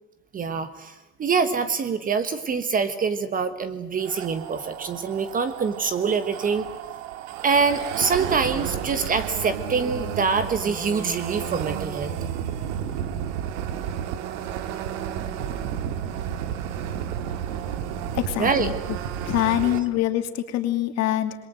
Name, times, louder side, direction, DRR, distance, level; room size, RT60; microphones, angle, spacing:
voice 1, 0.3-6.7 7.4-12.1 18.4-18.7 19.6-19.8, right 5 dB, 20° right, 11 dB, 1.4 m, -25 dB
sound 1, 4.0-19.8, right 9 dB, 80° right, 2.3 m, -32 dB
voice 2, 18.2-18.7 19.3-21.4, left 13 dB, 40° left, 7 dB, 2.8 m, -24 dB
27.0 x 22.0 x 7.8 m, 0.98 s
cardioid pair, 155°, 38 cm